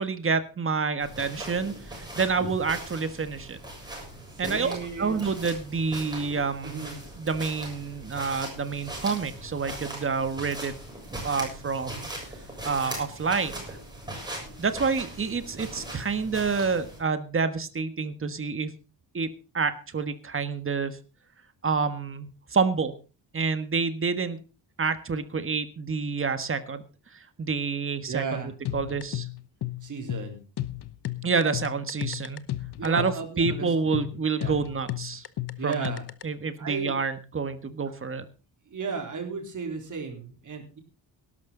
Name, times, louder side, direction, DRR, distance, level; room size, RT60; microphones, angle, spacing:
voice 1, 0.0-3.6 4.4-6.9 7.2-10.7 11.2-12.1 12.6-13.8 14.6-18.7 19.1-21.0 21.6-22.9 23.3-24.4 24.8-26.8 27.4-29.3 31.2-32.4 32.8-35.2 35.6-35.9 36.2-38.2, right 5 dB, 30° right, 10 dB, 1.5 m, -28 dB
sound 1, 1.0-17.0, right 1 dB, 10° right, 7.2 m, -40 dB
voice 2, 4.4-5.3 6.6-7.0 28.1-28.5 29.8-30.4 32.8-34.1 34.3-34.6 35.6-36.0 36.6-37.0 38.7-40.8, right 5 dB, 45° right, 4 dB, 3.8 m, -34 dB
sound 2, 28.7-36.2, left 14 dB, 65° left, 1.0 m, -34 dB
18.5 x 12.0 x 3.9 m, 0.33 s
wide cardioid pair, 165°, 43 cm